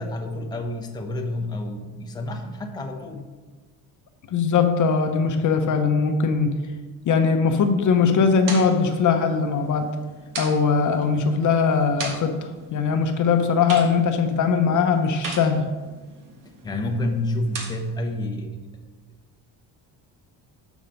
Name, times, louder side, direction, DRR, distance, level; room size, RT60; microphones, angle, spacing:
voice 1, 0.0-3.3 16.6-18.6, left 1 dB, 10° left, 3 dB, 0.7 m, -29 dB
voice 2, 4.3-6.5 7.1-9.9 10.4-15.7, left 5 dB, 45° left, 7 dB, 0.7 m, -20 dB
sound 1, 7.9-18.0, right 3 dB, 50° right, 1.6 m, -39 dB
7.1 x 5.6 x 5.2 m, 1.3 s
cardioid pair, 135°, 40 cm